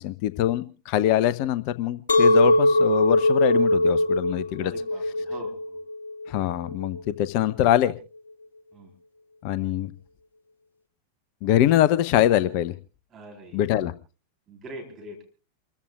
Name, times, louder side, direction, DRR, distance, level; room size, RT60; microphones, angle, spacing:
voice 1, 0.0-4.7 6.3-7.9 9.4-9.9 11.4-12.7 13.5-13.9, left 12 dB, 45° left, 15 dB, 0.7 m, -23 dB
Chink clink, 2.1-7.3, left 1 dB, 70° left, 1.9 m, -21 dB
voice 2, 4.6-5.8 8.7-8.9 13.1-13.6 14.5-15.2, right 1 dB, 25° right, 2 dB, 3.7 m, -42 dB
28.5 x 14.5 x 2.4 m, 0.33 s
figure-of-eight pair, 90°, 0 cm